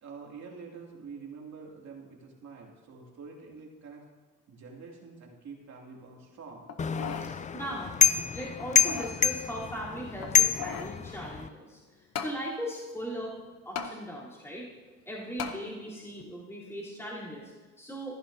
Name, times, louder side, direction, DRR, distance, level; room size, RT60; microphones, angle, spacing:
voice 1, 0.0-4.0 4.5-6.7, right 5 dB, 65° right, -2 dB, 2.8 m, -46 dB
sound 1, 6.7-7.3 7.8-7.9 8.6-9.2 10.2-11.0 12.2-12.4 13.8-13.9 15.4-15.6 16.2-16.3, left 6 dB, 55° left, 1.0 m, -37 dB
sound 2, 6.8-11.5, left 6 dB, 25° left, 0.4 m, -27 dB
voice 2, 7.2-13.3 13.7-14.7 15.1-18.2, equal, 10° left, -7 dB, 3.6 m, -39 dB
14.5 x 10.5 x 2.8 m, 1.3 s
cardioid pair, 90°, 30 cm